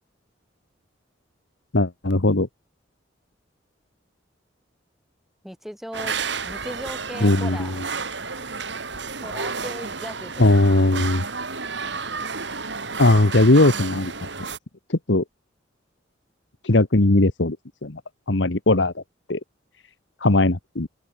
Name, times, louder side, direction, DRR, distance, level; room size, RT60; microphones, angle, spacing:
voice 1, 1.7-2.5 7.2-7.9 10.4-11.2 13.0-14.1 14.9-15.2 16.6-17.6 17.8-18.0 18.3-19.0 19.3-19.4 20.2-20.9, left 2 dB, 65° left, 1.5 m, -18 dB
voice 2, 5.4-6.1 6.4-7.7 8.0-8.5 9.2-10.4, equal, ahead, 5.6 m, -38 dB
sound 1, 5.9-14.6, right 4 dB, 60° right, 3.3 m, -31 dB
open air
head